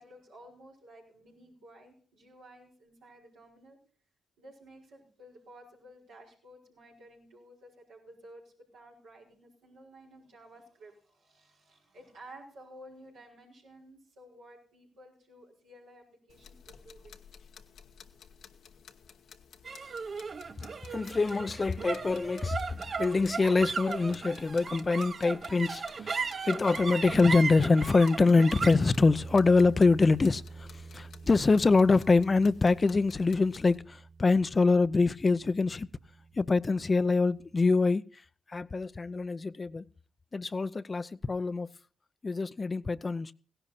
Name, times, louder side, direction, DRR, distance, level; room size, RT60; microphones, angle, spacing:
voice 1, 0.0-3.8 4.4-17.2, right 1 dB, 85° right, 5.2 m, -54 dB
sound 1, 16.3-33.8, left 7 dB, 75° left, 1.0 m, -55 dB
sound 2, 19.6-36.2, right 5 dB, 55° right, 0.6 m, -38 dB
voice 2, 20.9-35.9 36.4-38.0 38.5-39.8 40.3-41.7 42.2-43.3, left 3 dB, 40° left, 0.6 m, -25 dB
17.0 x 11.0 x 4.1 m
supercardioid pair, 45°, 0 cm